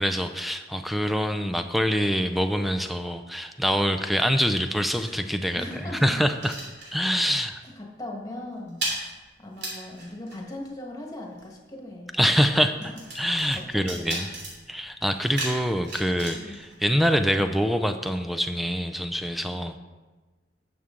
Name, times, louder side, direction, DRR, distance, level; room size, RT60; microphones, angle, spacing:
voice 1, 0.0-6.5 6.9-7.6 12.2-12.8 13.2-14.3 14.7-19.8, equal, ahead, 8 dB, 0.4 m, -25 dB
sound 1, 4.0-7.4 7.6-7.9 8.1-17.5, right 2 dB, 65° right, 3.2 m, -38 dB
voice 2, 5.5-6.1 7.3-7.5 7.8-9.1 9.4-12.2 12.9-13.0 13.5-14.2 16.3-16.6 19.4-19.7, left 1 dB, 20° left, 0 dB, 1.5 m, -39 dB
11.0 x 7.1 x 3.8 m, 1.2 s
head